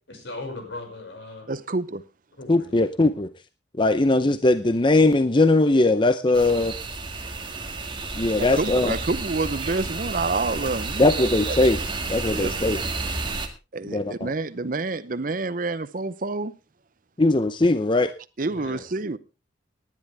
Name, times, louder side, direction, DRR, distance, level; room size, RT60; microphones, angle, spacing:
voice 1, 0.1-1.5 2.4-2.9 18.5-18.8, left 2 dB, 75° left, 5.8 m, -38 dB
voice 2, 1.5-2.0 8.4-11.0 11.5-11.6 12.3-12.5 13.7-16.5 18.4-19.2, right 3 dB, 45° right, 0.7 m, -28 dB
voice 3, 2.5-3.3 3.8-6.7 8.2-8.9 11.0-11.8 12.1-12.8 13.9-14.3 17.2-18.1, left 2 dB, 25° left, 0.6 m, -20 dB
sound 1, 6.3-13.5, right 3 dB, 25° right, 1.8 m, -31 dB
18.5 x 10.5 x 3.4 m
head